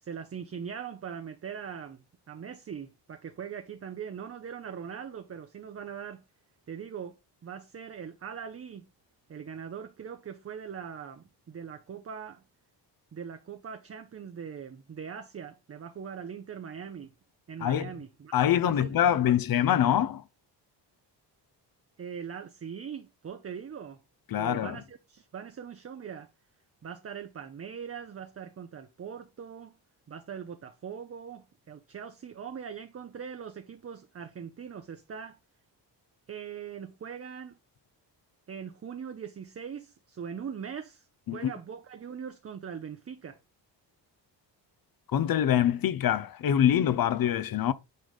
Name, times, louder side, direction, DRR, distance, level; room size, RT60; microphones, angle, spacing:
voice 1, 0.0-6.2 6.7-7.2 7.4-8.9 9.3-12.4 13.1-17.1 17.5-19.2 22.0-24.0 24.4-26.3 26.8-29.8 30.1-35.4 36.3-37.6 38.5-41.1 41.3-43.4, right 7 dB, 35° right, 0.7 m, -41 dB
voice 2, 17.6-17.9 18.3-20.2 24.3-24.8 41.3-41.5 45.1-47.7, left 10 dB, 55° left, 0.7 m, -25 dB
9.2 x 3.4 x 4.0 m
cardioid pair, 115°, 43 cm